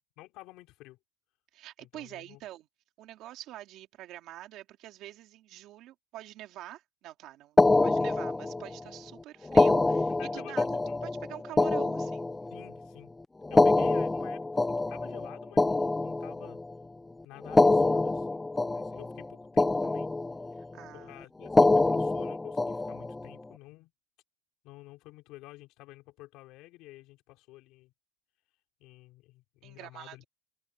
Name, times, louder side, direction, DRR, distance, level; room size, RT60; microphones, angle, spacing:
voice 1, 0.2-1.0 1.8-2.4 7.7-7.8 10.1-11.0 12.5-13.1 13.5-16.6 17.2-20.1 20.9-23.9 24.6-27.9 28.8-30.3, left 18 dB, 45° left, 4.3 m, -50 dB
voice 2, 1.5-2.7 3.0-10.6 11.0-12.3 20.7-21.2 29.6-30.2, right 14 dB, 40° right, 2.5 m, -45 dB
sound 1, 7.6-8.8 9.5-12.8 13.4-16.7 17.4-19.3 19.6-20.6 21.4-23.3, left 2 dB, 5° left, 0.3 m, -25 dB
cardioid pair, 175°, 0 cm